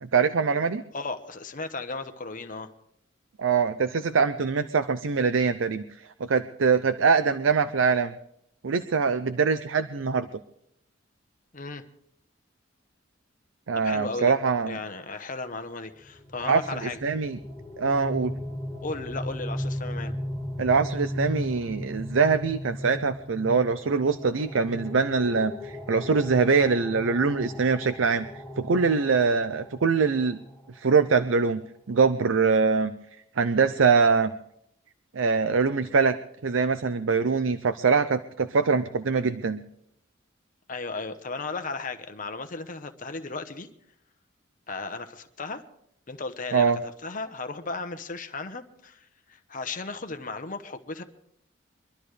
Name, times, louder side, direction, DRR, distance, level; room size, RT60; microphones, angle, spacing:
voice 1, 0.0-0.8 3.4-5.8 6.3-8.1 8.6-10.3 13.7-14.8 16.4-16.6 17.0-17.4 17.8-18.3 20.6-28.3 28.6-30.4 30.7-31.6 31.9-32.9 33.4-34.3 35.1-36.2 36.4-39.6 46.5-46.8, right 5 dB, 80° right, 11 dB, 0.6 m, -23 dB
voice 2, 0.9-2.7 11.5-11.8 13.8-14.3 14.7-17.0 18.8-20.1 40.7-43.7 44.7-45.6 46.1-46.7 47.0-51.0, left 3 dB, 45° left, 8 dB, 1.0 m, -35 dB
sound 1, 16.0-30.7, left 1 dB, ahead, 1.9 m, -36 dB
24.0 x 12.5 x 3.3 m, 0.72 s
head